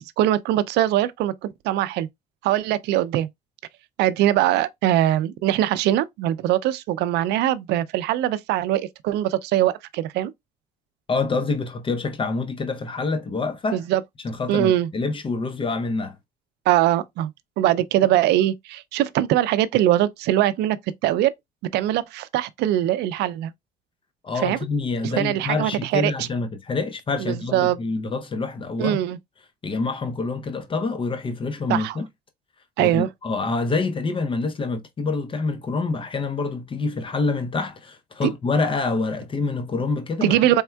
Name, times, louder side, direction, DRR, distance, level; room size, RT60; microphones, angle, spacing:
voice 1, 0.0-2.1 2.4-3.3 4.0-10.3 13.7-14.0 14.5-14.9 16.7-21.3 21.7-23.5 24.4-24.6 25.0-26.3 27.3-27.8 28.8-29.2 31.7-32.0 32.8-33.1 38.2-38.3 40.2-40.6, right 13 dB, 80° right, 0.4 m, -22 dB
voice 2, 11.1-13.8 14.2-16.1 24.2-29.0 29.6-32.1 32.8-40.4, left 3 dB, 30° left, 0.7 m, -26 dB
4.3 x 3.5 x 2.2 m
cardioid pair, 110°, 17 cm